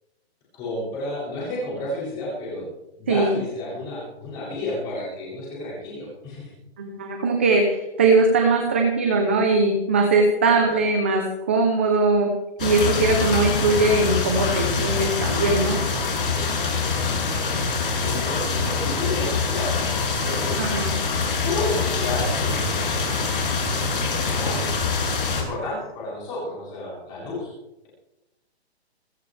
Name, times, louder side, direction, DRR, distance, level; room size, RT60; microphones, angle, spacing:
voice 1, 0.5-2.7 2.9-6.5 10.5-10.7 16.3-17.5 18.0-19.8 20.2-20.6 21.4-23.2 23.8-27.5, left 2 dB, 15° left, -7 dB, 7.8 m, -32 dB
voice 2, 6.8-12.3 12.6-15.8 20.6-20.9, right 3 dB, 10° right, 3 dB, 0.8 m, -20 dB
sound 1, 12.6-25.4, left 4 dB, 55° left, 7.2 m, -24 dB
29.0 x 14.5 x 3.5 m, 0.94 s
hypercardioid pair, 180°, 32 cm